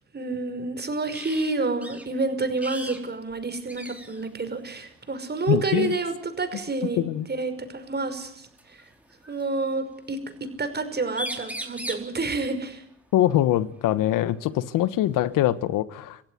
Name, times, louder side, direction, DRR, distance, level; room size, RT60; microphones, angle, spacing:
voice 1, 0.1-8.8 9.3-12.8, right 3 dB, 30° right, 9 dB, 5.5 m, -29 dB
sound 1, 1.1-1.5 1.8-2.1 2.6-3.0 3.3-3.4 3.7-4.3 5.4-5.7 7.4-7.5 8.6-9.4 10.8-10.9 11.1-12.1 14.1-14.2 14.6-15.6, equal, 5° right, 4.7 m, -37 dB
voice 2, 5.5-6.0 7.0-7.3 13.1-16.2, left 13 dB, 70° left, 16 dB, 1.3 m, -23 dB
26.5 x 16.0 x 9.8 m, 0.71 s
supercardioid pair, 75°, 33 cm